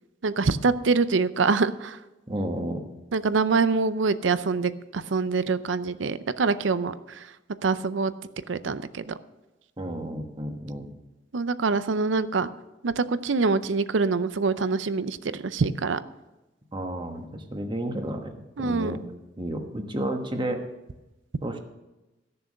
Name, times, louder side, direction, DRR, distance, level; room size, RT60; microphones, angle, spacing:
voice 1, 0.2-2.0 3.1-7.2 7.6-8.1 8.5-9.1 11.3-12.5 12.8-16.0 18.6-19.0, right 4 dB, 80° right, 14 dB, 0.6 m, -25 dB
voice 2, 2.3-2.8 9.8-10.9 16.7-18.3 18.6-19.0 19.4-20.6 21.4-21.6, right 1 dB, 25° right, 5 dB, 1.2 m, -31 dB
14.5 x 6.9 x 6.5 m, 1.0 s
head